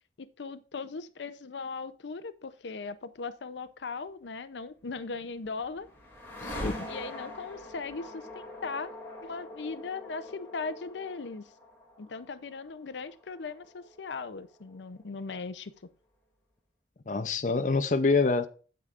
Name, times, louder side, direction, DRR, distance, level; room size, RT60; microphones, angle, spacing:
voice 1, 0.2-5.9 6.9-8.9 9.2-11.4 12.0-15.7, left 4 dB, 90° left, 0.6 m, -38 dB
sound 1, 5.0-15.0, left 1 dB, 15° left, 2.5 m, -44 dB
voice 2, 6.4-6.8 17.1-18.5, left 3 dB, 45° left, 0.6 m, -26 dB
9.2 x 7.9 x 2.5 m
head